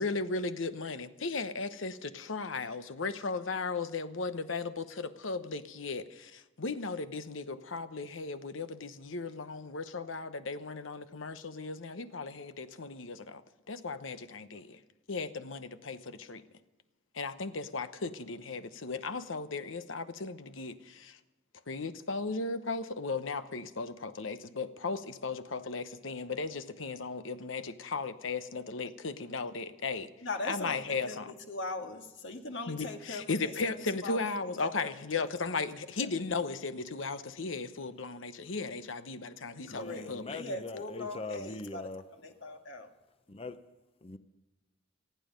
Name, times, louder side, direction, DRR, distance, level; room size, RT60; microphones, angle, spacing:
voice 1, 0.0-13.4 13.7-14.8 15.1-16.4 17.1-21.2 21.7-30.1 30.5-31.3 32.7-40.4, left 4 dB, 80° left, 1.0 m, -36 dB
voice 2, 30.2-35.2 36.0-36.1 39.7-41.8 42.1-42.9, left 2 dB, 65° left, 1.8 m, -40 dB
voice 3, 39.6-42.0 43.3-43.6 44.0-44.2, left 3 dB, 30° left, 0.8 m, -41 dB
27.0 x 9.3 x 5.2 m
head